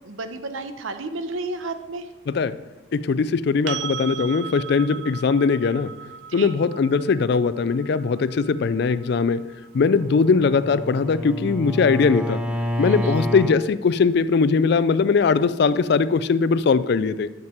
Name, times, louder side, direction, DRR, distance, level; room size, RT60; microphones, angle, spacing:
voice 1, 0.0-2.1 6.3-6.5 12.8-13.2, right 2 dB, 80° right, 0.8 m, -32 dB
voice 2, 2.3-2.6 2.9-5.9 6.3-12.4 12.8-17.3, left 5 dB, 55° left, 0.3 m, -20 dB
sound 1, 3.7-11.5 14.3-14.4, right 8 dB, 65° right, 0.3 m, -38 dB
Bowed string instrument, 9.8-13.6, left 1 dB, 5° right, 0.6 m, -28 dB
9.6 x 7.4 x 4.4 m
head